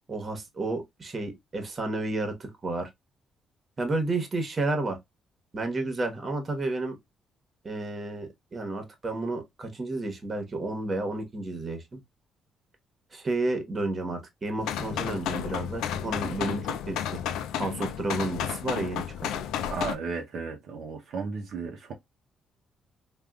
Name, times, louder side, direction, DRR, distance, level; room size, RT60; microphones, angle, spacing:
voice 1, 0.1-2.9 3.8-5.0 5.5-6.9 7.6-12.0 13.1-17.2 17.6-19.3, right 2 dB, 35° right, 1.1 m, -31 dB
sound 1, 14.6-20.0, left 9 dB, 90° left, 0.3 m, -32 dB
voice 2, 19.7-21.9, right 5 dB, 70° right, 0.7 m, -34 dB
3.5 x 2.4 x 2.3 m
cardioid pair, 90°, 0 cm